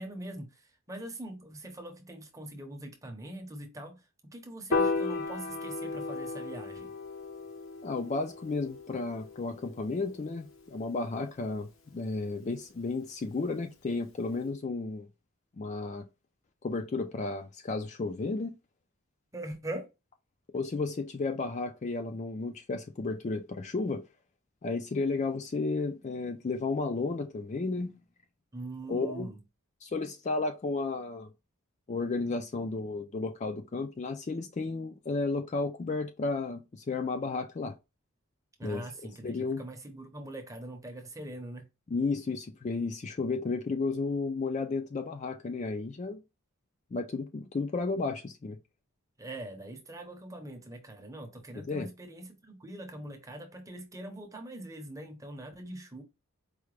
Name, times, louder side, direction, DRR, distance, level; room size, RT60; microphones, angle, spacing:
voice 1, 0.0-7.0 19.3-19.9 28.5-29.4 38.6-41.7 49.2-56.0, right 1 dB, 15° right, 0.7 m, -42 dB
Piano, 4.7-11.0, left 3 dB, 65° left, 0.7 m, -35 dB
voice 2, 7.8-15.1 15.6-16.1 16.6-18.5 20.5-24.0 24.6-27.9 28.9-29.3 29.8-31.3 31.9-37.7 38.6-38.8 39.2-39.6 41.9-46.2 46.9-48.6 51.7-51.9, left 3 dB, 30° left, 0.3 m, -33 dB
4.8 x 2.1 x 3.2 m
head